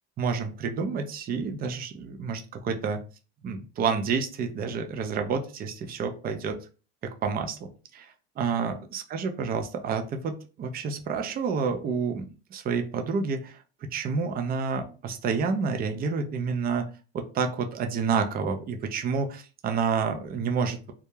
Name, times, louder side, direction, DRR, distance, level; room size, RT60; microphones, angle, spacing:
voice 1, 0.2-3.0 3.4-6.6 7.0-12.2 12.5-16.9 17.1-20.9, right 5 dB, 25° right, 6 dB, 0.4 m, -29 dB
2.3 x 2.1 x 3.0 m, 0.35 s
hypercardioid pair, 90°, 34 cm